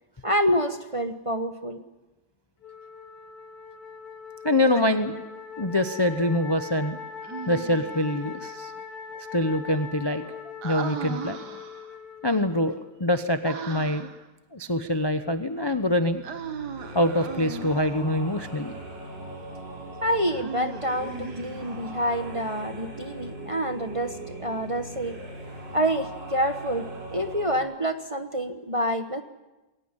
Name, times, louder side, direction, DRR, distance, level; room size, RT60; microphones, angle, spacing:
voice 1, 0.2-1.8 20.0-25.2 25.7-29.2, equal, 25° right, 7 dB, 0.9 m, -27 dB
Wind instrument woodwind instrument, 2.6-13.0, left 5 dB, 55° left, 2.5 m, -41 dB
voice 2, 4.4-5.2 5.6-7.0 7.5-8.7 9.1-11.4 12.2-14.1 14.5-16.2 16.9-18.7, left 1 dB, 25° left, 9 dB, 0.6 m, -25 dB
Human voice, 7.2-8.1 10.6-12.0 13.4-14.2 16.2-18.0 20.3-21.9, right 6 dB, 65° right, 2.0 m, -37 dB
sound 1, 15.3-27.6, right 1 dB, 85° right, 5.4 m, -40 dB
22.0 x 18.5 x 9.8 m, 1.1 s
omnidirectional pair, 1.9 m